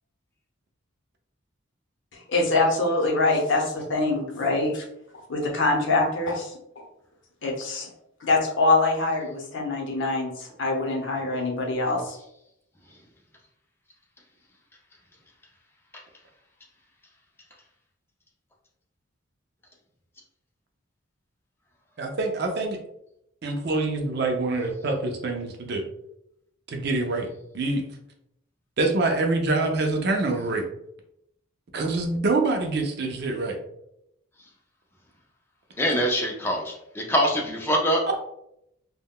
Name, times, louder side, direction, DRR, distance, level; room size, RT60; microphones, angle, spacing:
voice 1, 2.1-4.8 5.3-6.8 7.4-7.9 8.2-12.2, left 2 dB, 65° left, 0 dB, 0.7 m, -24 dB
voice 2, 22.0-22.8 23.4-25.8 26.7-27.3 27.5-27.8 28.8-30.7 31.7-33.6, right 2 dB, 50° right, 3 dB, 0.4 m, -25 dB
voice 3, 35.8-38.0, equal, 10° left, -1 dB, 0.4 m, -24 dB
3.5 x 2.2 x 2.2 m, 0.78 s
head